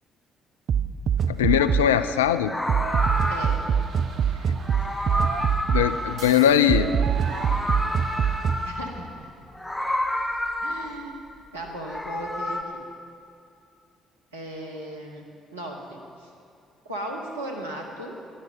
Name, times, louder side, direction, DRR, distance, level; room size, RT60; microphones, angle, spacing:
sound 1, 0.7-2.0 2.7-8.7, right 7 dB, 50° right, 0.4 m, -24 dB
voice 1, 1.3-2.5 5.7-6.9, left 9 dB, 80° left, 12 dB, 0.4 m, -20 dB
Meow, 1.6-1.8 2.4-3.8 4.5-6.8 7.1-9.0 9.5-11.1 11.7-12.6, left 1 dB, 10° left, 1.1 m, -30 dB
voice 2, 3.3-3.6 8.6-9.3 10.6-11.2 11.5-12.8 14.3-15.3 15.5-16.3 16.8-18.2, right 1 dB, 85° right, 0 dB, 1.2 m, -36 dB
12.0 x 11.0 x 5.6 m, 2.5 s
figure-of-eight pair, 45°, 0 cm